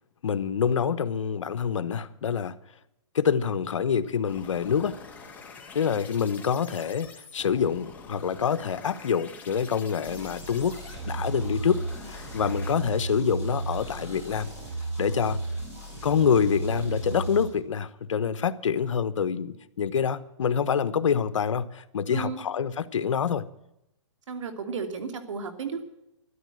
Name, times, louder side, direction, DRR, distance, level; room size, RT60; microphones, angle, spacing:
voice 1, 0.2-2.5 3.1-5.0 5.7-14.5 15.0-15.4 16.0-23.5, left 7 dB, 80° left, 1.1 m, -26 dB
sound 1, 4.2-12.7, left 4 dB, 10° left, 1.9 m, -46 dB
sound 2, 10.0-17.4, right 2 dB, 15° right, 6.6 m, -33 dB
voice 2, 22.1-22.4 24.3-25.8, right 5 dB, 75° right, 2.7 m, -33 dB
13.0 x 12.0 x 7.7 m
hypercardioid pair, 155°, 16 cm